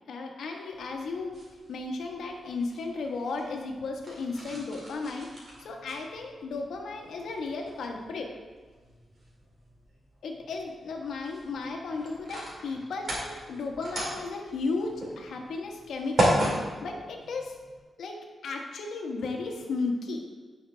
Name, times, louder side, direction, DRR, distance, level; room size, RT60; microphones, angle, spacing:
voice 1, 0.1-1.3 1.7-5.3 5.6-8.3 10.2-16.4 16.8-17.5 18.0-18.2 18.4-20.2, left 3 dB, 80° left, 1 dB, 1.4 m, -34 dB
sound 1, 0.7-17.8, right 1 dB, 35° right, 2.7 m, -36 dB
16.0 x 5.7 x 3.4 m, 1.4 s
wide cardioid pair, 180°, 0 cm